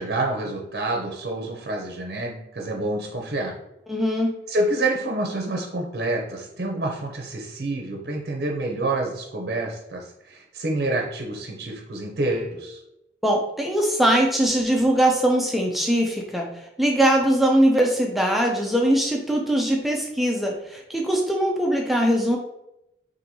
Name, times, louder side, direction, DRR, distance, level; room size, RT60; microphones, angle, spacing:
voice 1, 0.0-3.5 4.5-12.8, right 2 dB, 60° right, 0 dB, 0.6 m, -28 dB
voice 2, 3.9-4.4 13.2-22.4, right 1 dB, ahead, 0 dB, 0.4 m, -21 dB
4.2 x 2.6 x 2.7 m, 0.85 s
head